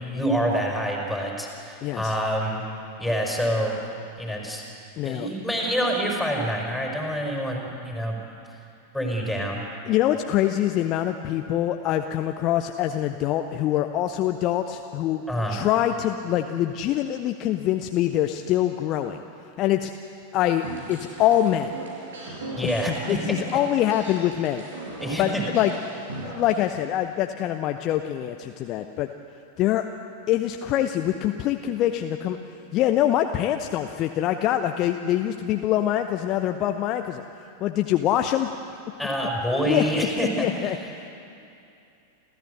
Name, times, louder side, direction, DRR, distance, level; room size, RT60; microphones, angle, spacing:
voice 1, 0.0-2.7 3.0-3.8 4.2-4.6 5.0-8.2 8.5-8.6 8.9-9.6 15.3-15.6 22.6-23.4 25.0-25.5 39.0-40.9, equal, ahead, 0 dB, 5.2 m, -27 dB
voice 2, 1.8-2.1 5.0-5.3 9.9-19.2 19.6-19.9 20.3-21.7 22.6-22.8 23.1-24.6 25.2-25.7 26.2-29.1 29.6-29.9 30.3-32.4 32.7-37.2 37.6-38.5 39.7-40.8, left 12 dB, 35° left, 6 dB, 0.8 m, -24 dB
sound 1, 20.6-26.6, right 2 dB, 65° right, 5.7 m, -38 dB
29.0 x 14.5 x 8.1 m, 2.6 s
figure-of-eight pair, 90°, 0 cm